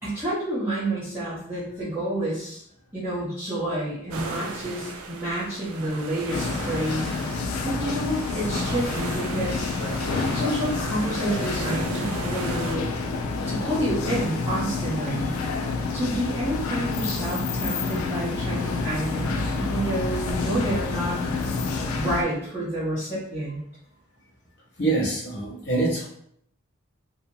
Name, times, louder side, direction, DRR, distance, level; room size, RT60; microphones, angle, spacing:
voice 1, 0.0-2.6 2.9-7.1 7.6-9.6 10.3-12.8 13.5-15.3 15.9-21.2 21.9-23.6, right 1 dB, 10° right, -13 dB, 0.7 m, -29 dB
sound 1, 4.1-12.8, right 3 dB, 85° right, 0.4 m, -36 dB
sound 2, 6.3-22.2, left 4 dB, 90° left, 0.4 m, -28 dB
voice 2, 24.8-26.1, right 2 dB, 55° left, -6 dB, 0.7 m, -26 dB
2.7 x 2.0 x 2.6 m, 0.69 s
head